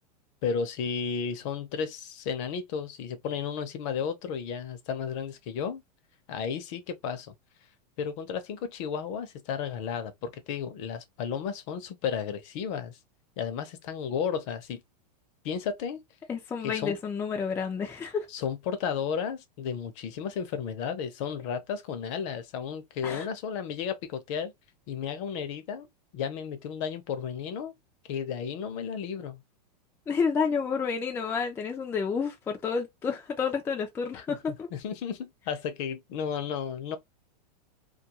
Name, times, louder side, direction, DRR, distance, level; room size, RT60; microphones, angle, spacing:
voice 1, 0.4-5.8 6.3-7.3 8.0-13.0 13.4-14.8 15.4-16.0 16.6-17.0 18.3-24.5 24.9-25.9 26.1-27.7 28.1-29.4 34.1-37.0, left 7 dB, 50° left, 0.6 m, -33 dB
voice 2, 16.3-18.3 23.0-23.3 30.1-34.7, left 5 dB, 10° left, 0.3 m, -30 dB
2.3 x 2.3 x 2.9 m
supercardioid pair, 145°, 21 cm